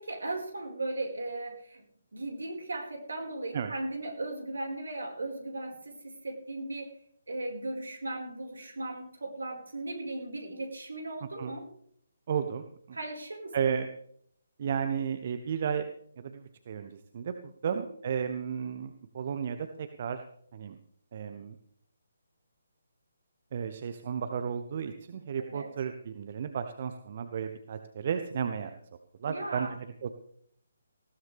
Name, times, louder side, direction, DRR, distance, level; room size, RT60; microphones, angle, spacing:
voice 1, 0.0-1.8 2.1-6.9 7.3-11.7 12.9-13.6 17.6-17.8 25.4-25.7 29.2-29.8, right 2 dB, 65° right, 2 dB, 4.9 m, -37 dB
voice 2, 12.3-13.0 13.5-13.9 14.6-15.9 16.2-17.3 17.6-20.2 20.5-20.8 21.1-21.5 23.5-28.8 29.2-30.1, right 7 dB, 40° right, 8 dB, 1.0 m, -33 dB
19.5 x 16.0 x 3.5 m, 0.66 s
figure-of-eight pair, 140°, 0 cm